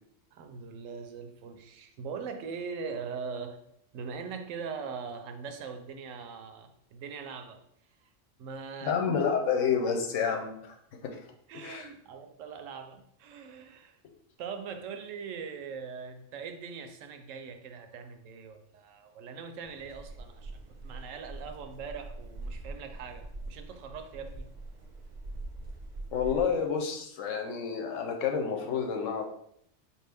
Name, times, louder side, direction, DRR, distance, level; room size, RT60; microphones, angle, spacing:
voice 1, 0.3-3.6 3.9-7.6 8.4-9.0 11.5-14.0 14.4-24.5, right 5 dB, 80° right, 7 dB, 0.9 m, -41 dB
voice 2, 8.8-10.7 11.0-11.1 11.6-11.9 26.1-29.3, left 6 dB, 80° left, 4 dB, 1.0 m, -29 dB
sound 1, 19.6-26.4, right 2 dB, 50° right, 0.6 m, -43 dB
4.6 x 2.6 x 3.4 m, 0.73 s
omnidirectional pair, 1.3 m